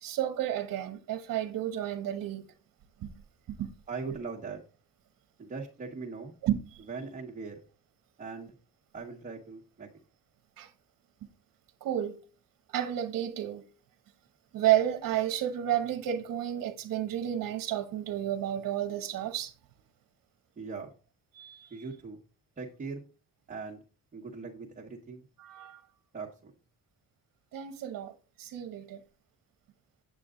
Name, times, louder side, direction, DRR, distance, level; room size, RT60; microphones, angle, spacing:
voice 1, 0.0-2.4 3.0-3.1 3.5-3.7 6.4-6.6 10.6-10.7 11.8-12.2 12.7-13.6 14.5-19.5 21.3-21.8 25.4-25.8 27.5-28.1 28.4-29.0, right 11 dB, 70° right, 1.0 m, -31 dB
voice 2, 3.9-4.6 5.4-6.3 6.9-7.6 8.2-8.5 8.9-9.9 20.6-20.9 21.7-22.2 22.6-23.0 23.5-23.8 24.1-25.2 26.1-26.5, right 4 dB, 25° right, 1.3 m, -40 dB
8.6 x 7.9 x 3.7 m
cardioid pair, 165°, 33 cm